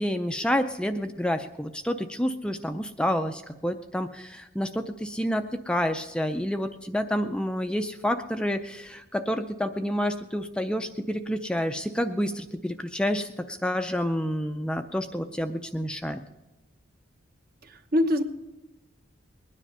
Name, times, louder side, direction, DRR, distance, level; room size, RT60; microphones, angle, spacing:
voice 1, 0.0-16.2, equal, 5° left, 7 dB, 0.4 m, -29 dB
voice 2, 17.6-18.2, left 1 dB, 50° right, 6 dB, 1.1 m, -24 dB
20.5 x 10.0 x 5.5 m, 1.0 s
head